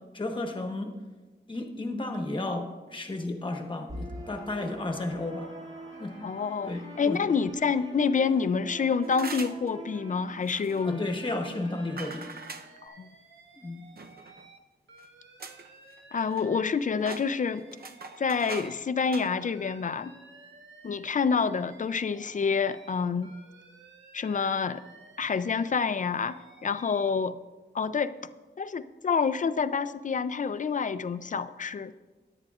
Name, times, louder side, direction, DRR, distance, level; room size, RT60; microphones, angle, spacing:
voice 1, 0.1-0.9 1.5-5.5 6.0-6.1 6.6-7.2 10.8-12.3 13.5-13.8, left 2 dB, 25° left, 3 dB, 1.2 m, -33 dB
sound 1, 3.9-12.9, right 1 dB, 35° right, 2.2 m, -45 dB
voice 2, 6.2-11.1 12.8-13.1 16.1-17.7 18.2-20.1 20.8-23.3 24.1-24.8 25.2-27.4 27.7-28.1 28.6-31.9, left 5 dB, 45° left, 13 dB, 0.4 m, -28 dB
sound 2, 9.0-9.7 10.4-10.8 12.0-12.7 14.0-14.4 15.0-15.1 15.4-15.7 16.0-16.7 17.0-18.7 19.0-19.3, right 4 dB, 55° right, 0.7 m, -41 dB
Alarm, 10.7-14.6 14.9-18.8 19.0-22.9 23.2-27.1, right 3 dB, 90° right, 1.2 m, -54 dB
16.5 x 11.0 x 2.4 m, 1.2 s
wide cardioid pair, 115°, 19 cm